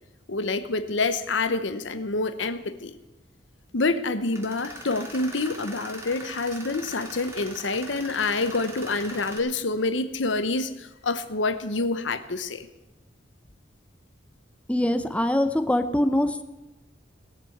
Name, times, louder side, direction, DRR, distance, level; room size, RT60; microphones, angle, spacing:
voice 1, 0.3-3.0 3.7-12.7, left 3 dB, 90° left, 11 dB, 1.0 m, -27 dB
Tools, 4.3-9.4, right 1 dB, 15° right, 2.7 m, -41 dB
voice 2, 14.7-16.4, left 1 dB, 5° left, 8 dB, 0.7 m, -23 dB
18.0 x 6.8 x 7.9 m, 1.0 s
head